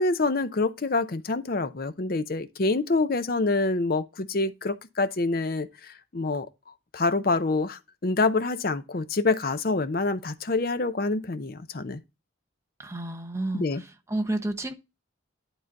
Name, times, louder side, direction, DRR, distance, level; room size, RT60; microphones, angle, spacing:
voice 1, 0.0-5.7 6.1-6.5 6.9-12.0 13.5-13.8, left 3 dB, 45° left, 0.6 m, -26 dB
voice 2, 12.8-14.7, right 1 dB, 15° right, 0.8 m, -31 dB
11.0 x 3.9 x 3.9 m
head